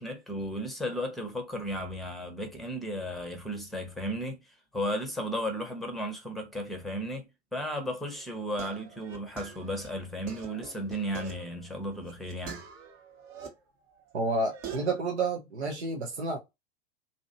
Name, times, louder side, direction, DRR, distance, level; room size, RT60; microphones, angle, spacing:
voice 1, 0.0-4.4 4.7-12.6, equal, ahead, 0.7 m, -34 dB
sound 1, 8.0-13.5 13.9-15.0, right 6 dB, 40° right, 0.9 m, -45 dB
voice 2, 14.1-16.4, right 3 dB, 80° right, 0.7 m, -30 dB
2.7 x 2.5 x 2.7 m
figure-of-eight pair, 90°, 33 cm